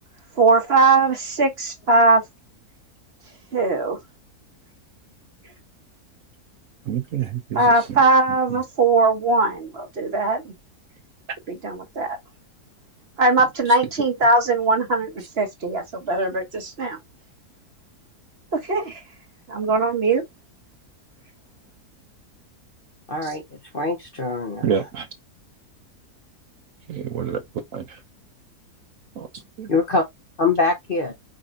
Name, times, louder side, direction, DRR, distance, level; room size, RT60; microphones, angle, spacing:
voice 1, 0.4-2.2 3.5-4.0 7.5-10.5 11.5-12.2 13.2-15.1 15.4-17.0 18.6-19.0 19.5-20.2, right 3 dB, 40° right, 1.2 m, -20 dB
voice 2, 6.9-8.0 8.5-8.6 23.2-23.4 24.6-25.1 26.9-27.4 27.7-28.0 29.2-29.3 29.6-29.7, right 8 dB, 60° right, 1.0 m, -28 dB
voice 3, 23.1-24.6 29.7-30.0 30.4-31.1, left 3 dB, 40° left, 0.9 m, -23 dB
5.2 x 2.7 x 3.7 m
omnidirectional pair, 1.7 m